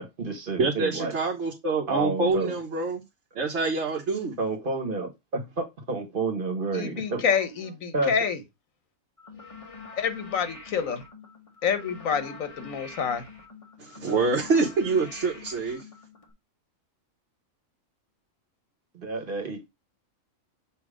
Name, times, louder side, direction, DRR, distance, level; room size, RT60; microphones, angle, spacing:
voice 1, 0.0-1.1 1.9-2.5 4.4-7.2 7.9-8.1 18.9-19.7, right 3 dB, 40° right, 1.4 m, -30 dB
voice 2, 0.6-3.0 3.3-4.4 13.8-15.8, right 3 dB, 60° right, 1.3 m, -26 dB
voice 3, 6.7-8.4 10.0-11.0 11.6-13.2, left 7 dB, 75° left, 1.4 m, -27 dB
sound 1, 9.2-16.3, left 4 dB, 25° left, 1.2 m, -45 dB
7.1 x 2.8 x 4.8 m
omnidirectional pair, 1.4 m